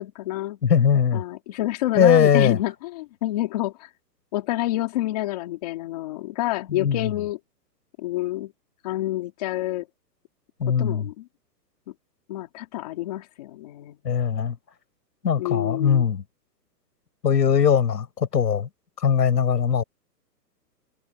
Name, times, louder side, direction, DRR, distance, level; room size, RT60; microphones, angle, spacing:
voice 1, 0.0-0.6 1.1-3.9 4.3-7.4 8.0-8.5 8.8-9.9 10.7-11.3 11.9-12.0 12.3-14.0 15.4-16.1, left 16 dB, 25° left, 2.5 m, -28 dB
voice 2, 0.6-1.2 1.9-2.6 6.7-7.1 10.6-11.1 14.0-14.6 15.2-16.2 17.2-18.7 19.0-19.8, left 7 dB, 75° left, 6.1 m, -20 dB
hypercardioid pair, 180°, 50 cm